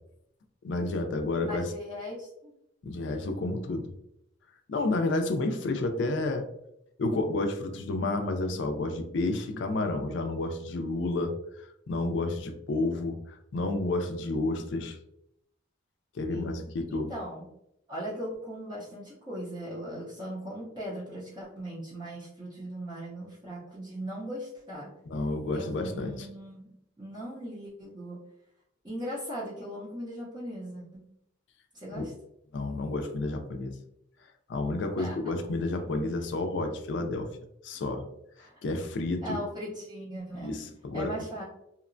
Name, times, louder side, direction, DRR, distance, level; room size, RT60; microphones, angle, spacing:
voice 1, 0.6-1.7 2.8-3.9 4.7-6.5 7.0-15.0 16.1-17.1 25.1-26.3 32.0-32.1 32.5-33.7 34.5-37.3 37.6-38.1 38.6-39.4 40.4-41.1, left 2 dB, 65° left, 6 dB, 0.4 m, -30 dB
voice 2, 1.4-2.5 16.3-16.6 16.9-17.4 17.9-24.9 25.5-28.2 28.8-31.1 31.7-32.1 35.0-35.3 38.4-38.5 39.2-40.6 40.9-41.4, equal, 20° right, -8 dB, 0.5 m, -39 dB
2.8 x 2.1 x 2.5 m, 0.79 s
head